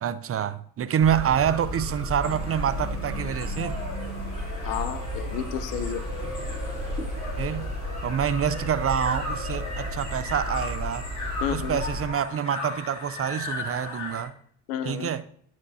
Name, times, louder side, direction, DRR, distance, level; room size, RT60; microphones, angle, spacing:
voice 1, 0.0-3.8 7.4-7.7 8.0-11.1 11.5-14.3 14.8-15.2, right 9 dB, 30° right, 0.5 m, -27 dB
sound 1, 1.0-12.1, equal, 15° right, 3.2 m, -33 dB
sound 2, 2.2-14.2, left 2 dB, 35° left, 2.9 m, -37 dB
voice 2, 4.6-6.0 11.4-11.8 14.7-15.1, left 9 dB, 75° left, 0.9 m, -31 dB
9.6 x 6.1 x 2.8 m
supercardioid pair, 75°, 49 cm